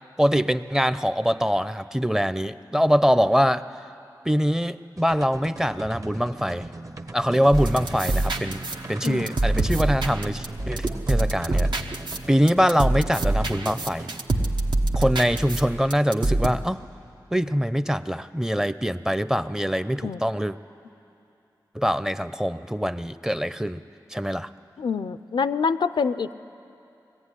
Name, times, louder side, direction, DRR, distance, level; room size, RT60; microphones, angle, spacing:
voice 1, 0.2-3.6 4.2-6.7 7.1-8.6 8.9-11.7 12.3-14.1 14.9-16.8 17.3-20.5 21.7-23.8 24.1-24.5, equal, 5° right, 13 dB, 0.5 m, -23 dB
sound 1, 5.0-14.2, right 2 dB, 45° right, 1.0 m, -40 dB
sound 2, 7.5-16.5, right 2 dB, 80° right, 1.1 m, -26 dB
voice 2, 24.8-26.3, left 5 dB, 90° left, 13 dB, 0.5 m, -26 dB
21.5 x 15.0 x 9.8 m, 2.7 s
wide cardioid pair, 60°, 8 cm